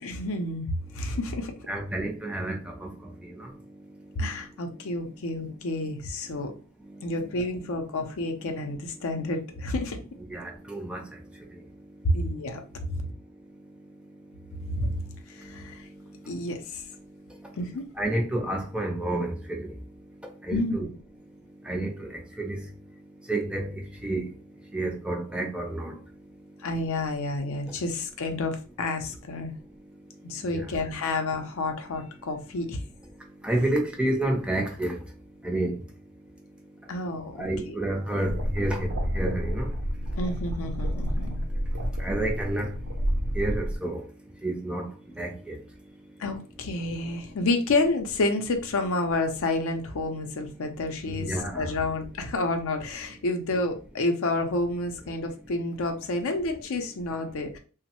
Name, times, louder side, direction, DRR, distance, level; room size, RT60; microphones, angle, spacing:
voice 1, 0.0-1.5 4.2-6.5 7.0-10.0 12.0-12.6 14.7-14.9 15.3-15.9 16.3-16.8 17.6-17.9 20.5-20.9 26.6-29.5 30.2-32.8 36.9-37.4 40.2-41.4 46.2-57.6, left 2 dB, 65° left, 0.5 m, -29 dB
voice 2, 1.7-4.4 4.7-5.6 5.8-5.9 6.3-7.4 8.4-8.5 9.1-9.3 10.3-11.6 14.4-15.0 15.4-16.5 16.9-17.6 18.0-19.8 20.2-20.8 21.6-22.7 23.2-24.4 24.7-26.0 30.4-30.7 33.4-35.1 35.4-35.8 37.3-39.7 42.0-42.8 43.3-44.1 44.4-45.6 51.0-51.7, right 1 dB, 5° right, 0.5 m, -31 dB
sound 1, 38.2-43.8, equal, 70° right, 0.7 m, -30 dB
3.0 x 2.1 x 2.9 m
head